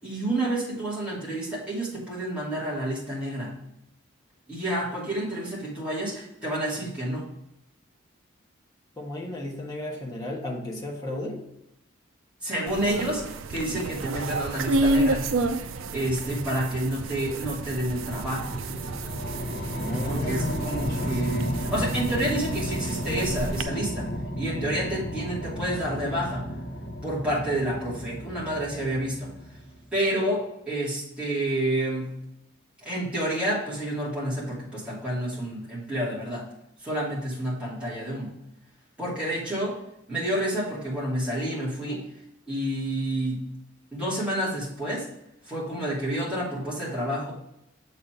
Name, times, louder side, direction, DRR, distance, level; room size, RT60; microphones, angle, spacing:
voice 1, 0.0-3.5 4.5-7.3 12.4-15.3 15.9-18.6 20.0-24.1 24.4-26.5 27.0-29.3 29.9-32.1 32.8-36.4 36.8-38.3 39.0-39.8 40.1-42.0 42.5-43.4 43.9-45.1 45.5-47.3, right 1 dB, 5° right, -9 dB, 2.8 m, -29 dB
voice 2, 9.0-11.5 19.7-21.2, left 1 dB, 20° left, -3 dB, 1.5 m, -34 dB
sound 1, 12.7-23.6, right 2 dB, 85° right, 0.5 m, -31 dB
sound 2, 17.4-29.9, equal, 50° left, 1.0 m, -33 dB
7.3 x 4.2 x 4.6 m, 0.84 s
head